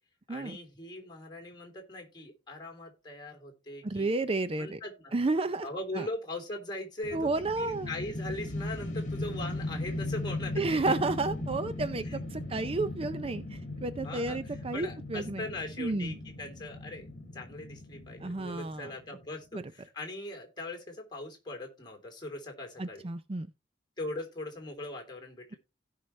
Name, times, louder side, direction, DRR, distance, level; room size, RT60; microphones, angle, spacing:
voice 1, 0.3-4.1 4.6-5.1 5.6-10.9 12.0-12.2 14.0-17.1 17.3-23.1 24.0-25.6, left 2 dB, 25° left, 3.3 m, -40 dB
voice 2, 3.8-4.8 5.1-5.7 6.0-6.1 7.1-7.9 10.6-13.4 13.8-15.4 15.8-16.1 18.2-18.9 19.5-19.6 22.8-23.5, right 3 dB, 30° right, 0.5 m, -31 dB
sound 1, 7.0-19.2, left 2 dB, 45° left, 2.2 m, -38 dB
16.5 x 5.6 x 3.2 m
head